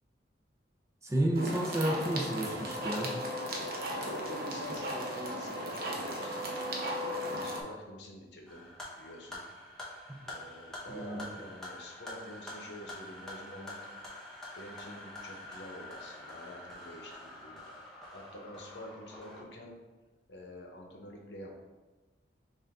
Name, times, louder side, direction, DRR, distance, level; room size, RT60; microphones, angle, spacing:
voice 1, 1.0-3.1 10.1-10.2 10.9-11.3, right 1 dB, 15° right, 0 dB, 0.5 m, -31 dB
sound 1, 1.3-7.6, equal, 55° right, 0.8 m, -36 dB
voice 2, 3.9-8.7 8.9-9.4 10.3-13.8 14.5-17.6 18.1-19.7 20.3-21.6, left 1 dB, 80° left, 0 dB, 0.9 m, -47 dB
sound 2, 8.5-19.4, left 1 dB, 5° left, 0.9 m, -46 dB
5.6 x 2.6 x 3.5 m, 1.2 s
head